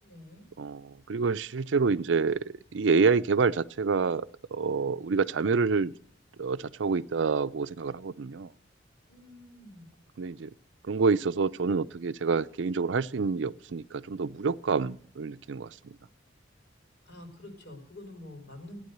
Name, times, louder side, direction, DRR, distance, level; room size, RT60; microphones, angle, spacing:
voice 1, 0.0-0.4 9.1-9.9 17.0-18.8, left 1 dB, 65° left, 4.2 m, -47 dB
voice 2, 0.6-2.4 2.7-5.9 6.4-8.5 10.2-10.5 10.9-16.0, right 4 dB, 75° right, 0.5 m, -27 dB
14.5 x 9.7 x 7.9 m
head